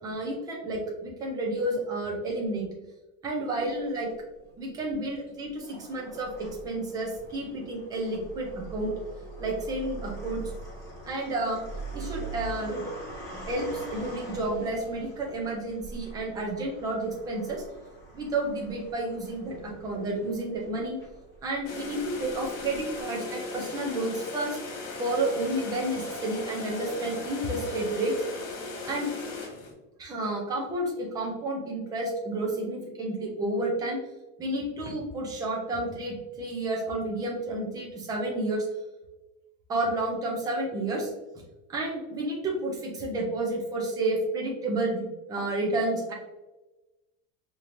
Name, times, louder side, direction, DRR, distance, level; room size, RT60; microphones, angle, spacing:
voice 1, 0.0-2.7 3.2-4.1 4.6-8.9 9.4-10.4 11.0-11.6 11.9-12.8 13.5-17.6 18.1-21.0 21.4-24.6 25.0-28.2 28.8-29.1 30.0-34.0 34.4-38.7 39.7-41.1 41.7-46.1, right 2 dB, 10° right, -1 dB, 0.3 m, -31 dB
sound 1, 3.8-4.5 5.2-23.0, right 2 dB, 10° left, 1.3 m, -43 dB
sound 2, 21.7-29.7, left 3 dB, 65° left, 1.4 m, -38 dB
4.9 x 2.9 x 2.5 m, 1.1 s
cardioid pair, 170°, 39 cm